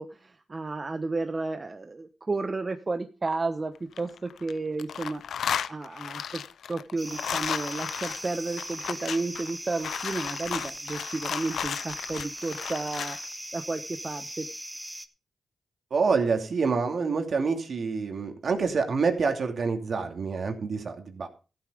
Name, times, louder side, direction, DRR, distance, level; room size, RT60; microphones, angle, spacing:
voice 1, 0.0-5.2 5.7-6.4 6.7-13.2 13.5-14.5, right 3 dB, 35° right, 8 dB, 1.0 m, -32 dB
sound 1, 3.8-4.5 4.8-13.2, left 8 dB, 85° left, 0.6 m, -34 dB
sound 2, 7.0-15.1, right 1 dB, 10° right, 1.5 m, -40 dB
voice 2, 15.9-21.3, right 4 dB, 60° right, 6 dB, 2.6 m, -27 dB
14.0 x 8.7 x 5.1 m, 0.33 s
cardioid pair, 60°, 0 cm